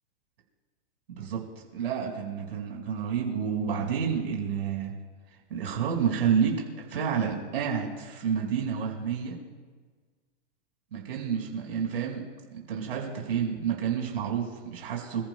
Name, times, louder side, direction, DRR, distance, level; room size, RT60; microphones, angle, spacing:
voice 1, 1.1-1.4 1.7-4.9 5.5-6.6 6.9-9.3 10.9-12.2 12.5-15.3, right 7 dB, 65° right, 0 dB, 5.1 m, -29 dB
28.5 x 14.5 x 2.2 m, 1.4 s
supercardioid pair, 180°, 31 cm